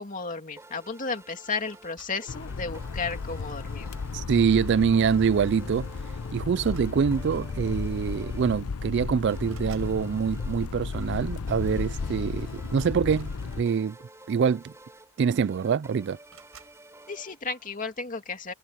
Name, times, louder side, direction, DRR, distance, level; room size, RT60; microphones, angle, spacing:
voice 1, 0.0-3.9 17.1-18.5, left 4 dB, 35° left, 2.7 m, -33 dB
sound 1, 0.6-18.0, right 2 dB, 15° right, 5.7 m, -52 dB
sound 2, 1.7-2.3 3.2-3.5 5.0-5.2 5.5-5.7 6.6-7.4 8.4-8.5 8.8-10.0 13.0-14.1 15.0-15.1 15.3-15.8 16.3-16.8, right 7 dB, 75° right, 5.7 m, -56 dB
sound 3, 2.3-13.6, left 4 dB, 90° left, 0.6 m, -34 dB
voice 2, 4.1-5.9 6.3-14.0 14.3-14.7 15.2-16.2, right 6 dB, 55° right, 0.3 m, -25 dB
head